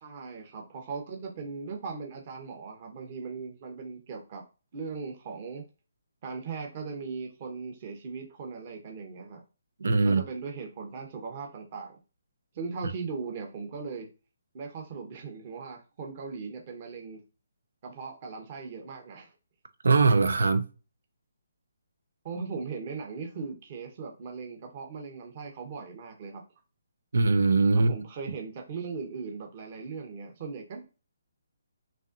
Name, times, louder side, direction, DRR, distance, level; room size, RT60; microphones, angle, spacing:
voice 1, 0.0-4.4 4.7-5.6 6.2-9.4 10.0-12.0 12.5-14.1 14.5-17.2 17.8-19.3 22.2-26.4 27.7-30.8, right 5 dB, 40° right, 1.2 m, -39 dB
voice 2, 9.8-10.2 19.8-20.6 27.1-27.9, right 3 dB, 70° right, 0.7 m, -21 dB
6.1 x 2.8 x 2.7 m
figure-of-eight pair, 145°, 0 cm